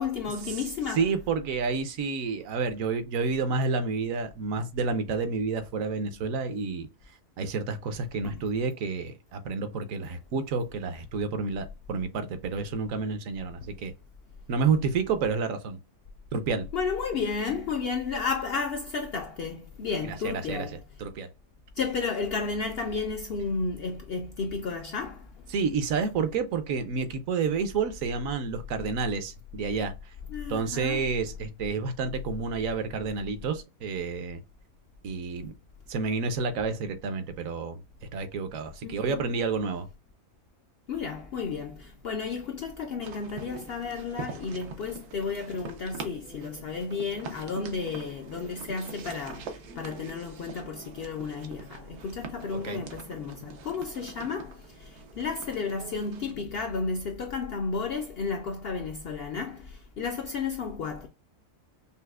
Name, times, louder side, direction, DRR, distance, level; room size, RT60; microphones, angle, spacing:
voice 1, 0.0-1.0 8.2-8.3 13.6-13.7 16.7-20.8 21.8-25.3 30.3-31.0 38.8-39.3 40.9-61.1, left 5 dB, 75° left, 0.5 m, -32 dB
voice 2, 0.9-6.9 7.4-13.9 14.5-15.8 16.3-16.7 20.0-21.3 25.5-29.9 30.5-34.4 35.0-35.5 35.9-37.8 38.1-39.9 52.5-52.8, right 4 dB, 70° right, 1.0 m, -30 dB
sound 1, 43.0-56.3, right 5 dB, 85° right, 1.2 m, -44 dB
5.5 x 2.0 x 2.3 m
omnidirectional pair, 1.6 m